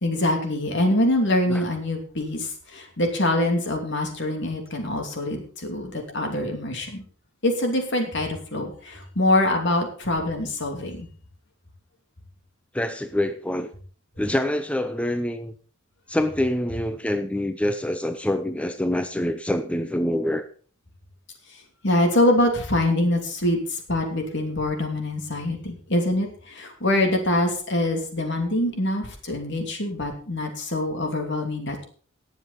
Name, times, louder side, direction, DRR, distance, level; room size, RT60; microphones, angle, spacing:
voice 1, 0.0-7.0 7.4-11.1 21.8-31.8, left 1 dB, 60° left, 3 dB, 2.8 m, -24 dB
voice 2, 12.7-13.7 14.2-15.5 16.1-20.5, left 1 dB, 5° left, 9 dB, 0.5 m, -26 dB
19.0 x 7.3 x 4.1 m, 0.42 s
head